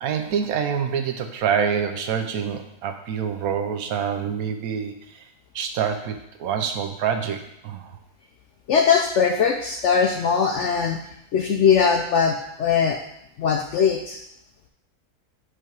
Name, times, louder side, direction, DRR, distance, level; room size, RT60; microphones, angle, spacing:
voice 1, 0.0-5.2 5.5-7.9, right 7 dB, 70° right, 6 dB, 1.0 m, -26 dB
voice 2, 8.7-11.0 11.3-13.0 13.4-14.2, left 6 dB, 70° left, 3 dB, 0.7 m, -20 dB
8.1 x 3.4 x 4.5 m, 0.80 s
omnidirectional pair, 1.7 m